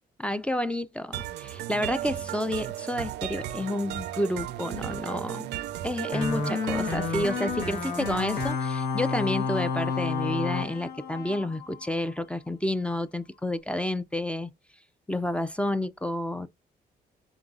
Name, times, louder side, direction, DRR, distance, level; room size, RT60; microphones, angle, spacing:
voice 1, 0.2-5.5 5.8-14.5 15.1-16.5, left 1 dB, 5° left, 0.4 m, -30 dB
sound 1, 1.1-8.5, right 12 dB, 90° right, 0.4 m, -35 dB
sound 2, 6.1-12.2, left 5 dB, 75° left, 1.2 m, -30 dB
4.0 x 3.7 x 2.4 m
cardioid pair, 85°, 17 cm